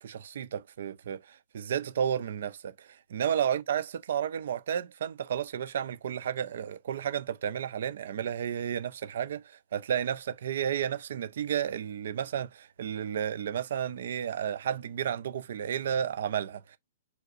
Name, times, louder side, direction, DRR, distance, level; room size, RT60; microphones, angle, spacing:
voice 1, 0.0-16.8, right 9 dB, 55° right, 0.5 m, -32 dB
4.8 x 3.3 x 2.5 m
figure-of-eight pair, 115°, 0 cm